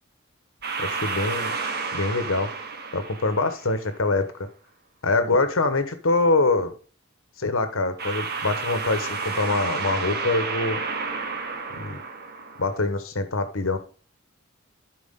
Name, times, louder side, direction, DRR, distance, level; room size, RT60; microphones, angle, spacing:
sound 1, 0.6-3.9 8.0-12.8, right 4 dB, 55° right, 1.6 m, -31 dB
voice 1, 0.8-1.5 1.9-2.5 2.9-4.3 5.0-6.7 7.4-10.8 11.8-12.0 12.6-13.8, left 3 dB, 90° left, 10 dB, 1.2 m, -24 dB
14.0 x 4.7 x 3.7 m, 0.39 s
head